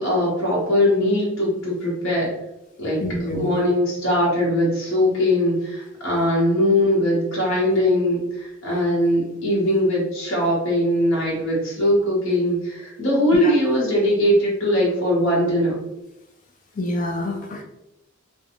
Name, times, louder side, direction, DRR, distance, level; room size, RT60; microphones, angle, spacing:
voice 1, 0.0-2.3 2.8-3.0 3.3-15.8, left 1 dB, 70° left, -5 dB, 0.9 m, -21 dB
voice 2, 3.0-3.5 13.4-13.5 16.8-17.6, left 1 dB, 40° left, 1 dB, 0.3 m, -27 dB
2.4 x 2.2 x 2.8 m, 0.91 s
head